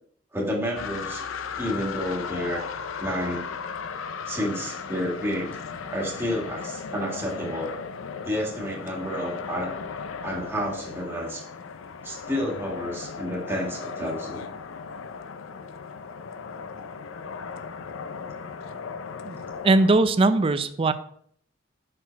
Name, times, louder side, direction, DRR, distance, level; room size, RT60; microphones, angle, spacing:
voice 1, 0.3-1.2 1.6-2.7 3.0-3.6 4.3-5.5 5.9-7.8 8.2-9.7 10.2-11.4 12.0-14.4, equal, 10° right, -3 dB, 1.7 m, -30 dB
sound 1, 0.8-19.9, left 5 dB, 80° left, 0.5 m, -36 dB
voice 2, 19.6-20.9, right 2 dB, 30° right, 11 dB, 0.4 m, -20 dB
6.0 x 4.7 x 4.4 m, 0.63 s
head